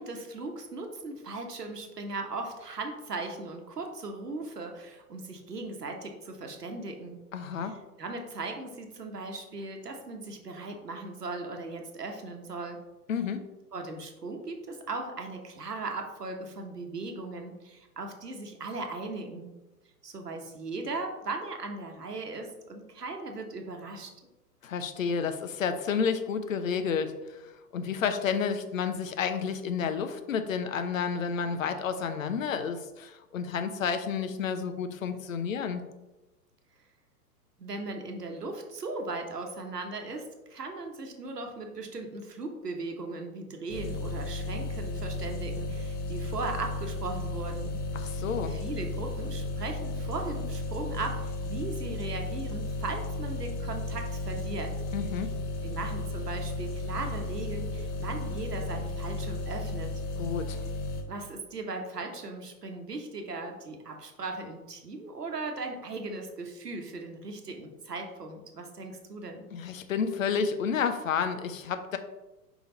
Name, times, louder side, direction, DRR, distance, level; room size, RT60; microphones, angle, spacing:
voice 1, 0.0-7.2 7.6-12.8 13.7-19.5 20.0-24.1 37.6-47.8 48.1-54.7 55.6-60.0 61.1-69.5, right 3 dB, 75° right, 4 dB, 1.2 m, -38 dB
voice 2, 7.3-7.7 13.1-13.4 24.6-35.8 47.9-48.6 54.9-55.3 60.2-60.6 69.5-72.0, left 6 dB, 55° left, 9 dB, 0.8 m, -30 dB
sound 1, 43.7-61.0, left 1 dB, 20° left, 0.9 m, -34 dB
5.1 x 5.0 x 3.9 m, 1.0 s
figure-of-eight pair, 110°, 47 cm